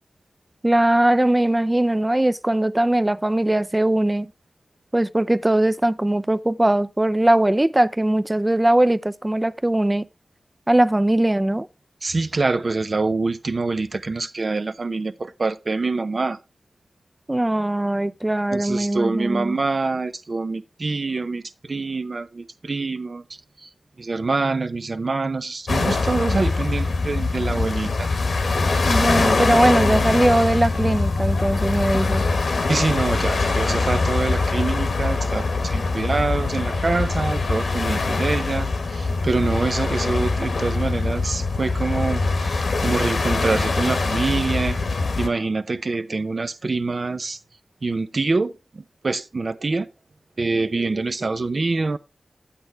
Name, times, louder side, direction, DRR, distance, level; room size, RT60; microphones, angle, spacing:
voice 1, 0.6-4.3 4.9-10.1 10.7-11.7 17.3-19.6 28.8-32.2, right 1 dB, 20° right, 0.5 m, -20 dB
voice 2, 12.0-16.4 18.5-23.2 23.6-23.7 24.0-28.1 32.6-44.8 45.2-47.4 47.8-49.9 50.4-52.0, right 3 dB, 60° right, 0.7 m, -25 dB
sound 1, 25.7-45.3, left 3 dB, 85° left, 1.3 m, -23 dB
9.6 x 8.5 x 3.3 m
cardioid pair, 45°, 0 cm